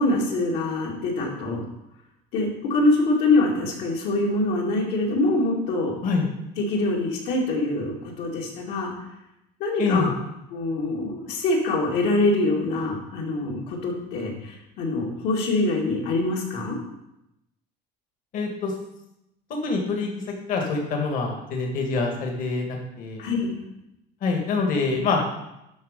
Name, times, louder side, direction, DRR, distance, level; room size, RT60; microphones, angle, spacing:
voice 1, 0.0-1.7 2.3-5.9 6.6-8.9 9.6-10.1 10.5-16.8 23.2-23.6, left 2 dB, 65° left, -2 dB, 2.3 m, -24 dB
voice 2, 9.8-10.1 18.3-18.7 19.6-20.1 20.5-23.2 24.2-25.2, left 4 dB, 45° left, 1 dB, 1.8 m, -25 dB
12.0 x 4.2 x 5.2 m, 0.86 s
cardioid pair, 160°, 19 cm